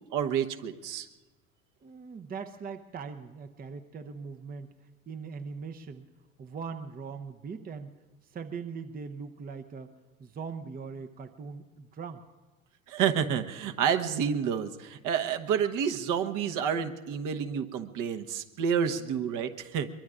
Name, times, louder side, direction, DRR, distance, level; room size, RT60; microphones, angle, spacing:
voice 1, 0.1-1.1 12.9-19.9, right 8 dB, 50° right, 7 dB, 1.2 m, -29 dB
voice 2, 1.8-4.7 5.1-6.1 6.4-7.9 8.2-9.9 10.2-12.2, right 5 dB, 20° right, 8 dB, 0.8 m, -40 dB
23.5 x 23.0 x 2.5 m, 1.2 s
hypercardioid pair, 70°, 41 cm